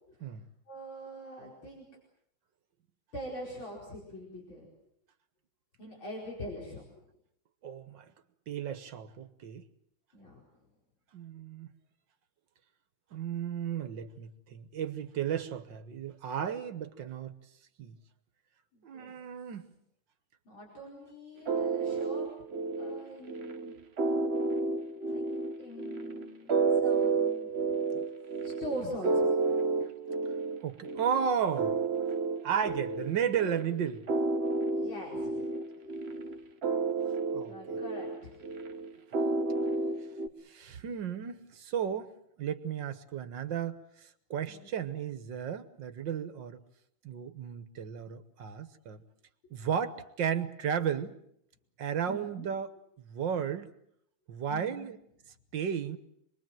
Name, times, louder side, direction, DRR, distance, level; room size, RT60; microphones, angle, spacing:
voice 1, 0.7-1.9 3.1-4.7 5.8-6.8 10.1-10.4 18.7-19.1 20.5-22.3 22.8-23.8 25.1-25.3 25.6-27.5 28.4-29.7 34.6-35.5 37.4-38.6 44.5-44.7 52.1-52.5 54.5-54.9, equal, 70° left, 5.7 m, -43 dB
voice 2, 7.6-8.1 8.5-9.6 11.1-11.7 13.1-17.3 17.8-18.0 18.8-19.7 30.6-31.8 32.4-34.1 37.3-37.5 40.5-42.1 42.4-46.6 47.0-49.0 49.5-51.2 51.8-53.7 54.3-55.0 55.5-56.0, right 8 dB, 65° right, 1.8 m, -34 dB
sound 1, 21.5-40.3, right 3 dB, 40° right, 1.1 m, -31 dB
26.5 x 21.5 x 7.7 m
omnidirectional pair, 2.3 m